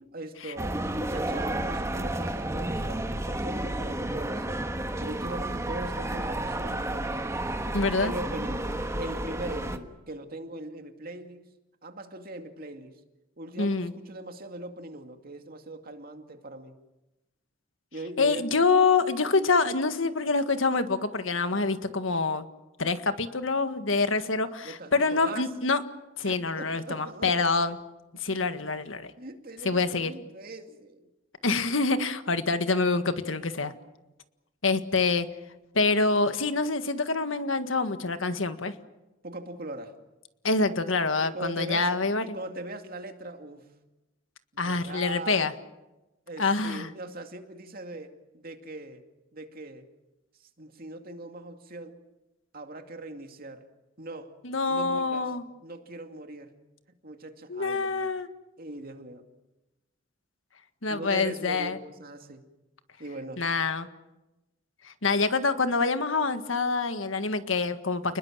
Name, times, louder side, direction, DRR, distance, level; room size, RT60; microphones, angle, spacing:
voice 1, 0.1-4.7 5.0-7.3 8.0-11.5 11.8-13.0 13.4-16.8 17.9-18.5 24.6-25.5 26.2-27.7 28.1-28.2 29.2-31.1 39.2-40.0 41.2-42.0 42.3-43.7 44.6-45.5 46.3-49.0 49.3-49.9 50.4-52.0 52.5-53.7 54.0-54.4 54.7-55.3 55.6-56.5 57.0-58.1 58.6-59.3 60.9-62.4 63.0-63.4, right 2 dB, 50° right, 5 dB, 2.4 m, -40 dB
sound 1, 0.6-9.8, right 1 dB, 15° right, 1.5 m, -31 dB
voice 2, 7.7-8.1 13.6-13.9 18.2-22.4 22.8-25.8 26.2-27.8 28.2-29.1 29.6-30.1 31.4-33.7 34.6-35.3 35.8-38.7 40.4-42.2 44.6-45.5 46.4-46.9 54.4-55.4 57.5-58.3 60.8-61.8 63.4-63.9 64.9-68.2, left 4 dB, 85° left, 9 dB, 1.7 m, -26 dB
30.0 x 21.0 x 7.4 m, 1.0 s
head